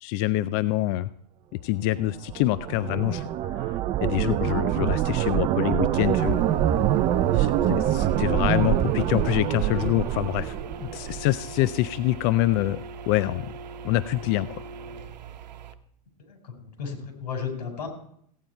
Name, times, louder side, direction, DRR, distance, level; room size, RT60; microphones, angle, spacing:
voice 1, 0.0-1.1 1.6-6.4 7.3-10.5 10.9-13.5 13.8-14.6, left 15 dB, 40° left, 15 dB, 0.4 m, -26 dB
sound 1, 2.1-11.3, right 12 dB, 25° right, 0.5 m, -25 dB
sound 2, 6.0-15.7, right 3 dB, 90° right, 1.0 m, -40 dB
voice 2, 16.3-17.9, left 6 dB, 80° left, 4 dB, 4.5 m, -34 dB
16.0 x 9.2 x 4.5 m, 0.66 s
supercardioid pair, 140°, 21 cm